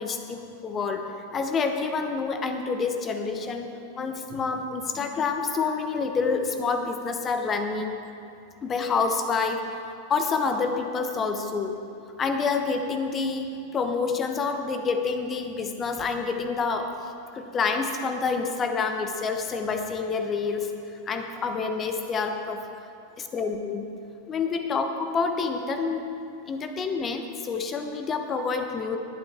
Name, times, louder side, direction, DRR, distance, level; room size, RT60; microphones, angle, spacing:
voice 1, 0.0-3.7 3.9-7.9 8.6-9.8 10.1-11.8 12.2-16.9 17.3-20.7 21.1-22.7 23.2-23.9 24.3-26.0 26.5-29.0, left 4 dB, 25° left, 6 dB, 1.0 m, -28 dB
19.5 x 8.9 x 3.6 m, 2.6 s
figure-of-eight pair, 90°, 0 cm